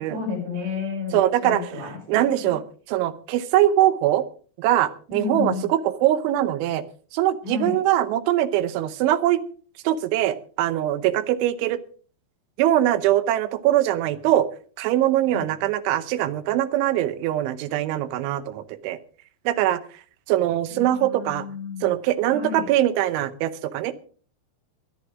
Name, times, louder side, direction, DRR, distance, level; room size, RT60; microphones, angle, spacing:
voice 1, 0.0-1.2 1.4-2.5 5.1-5.7 7.4-7.8 15.3-15.4 20.7-21.9 22.3-22.7, left 5 dB, 65° right, 0 dB, 8.6 m, -31 dB
voice 2, 1.1-2.6 2.9-4.2 4.6-6.8 7.1-9.4 9.8-11.8 12.6-14.5 14.8-19.0 19.5-19.8 20.3-21.5 21.8-23.9, right 13 dB, 85° right, 13 dB, 3.3 m, -22 dB
21.5 x 11.5 x 3.7 m, 0.42 s
omnidirectional pair, 5.3 m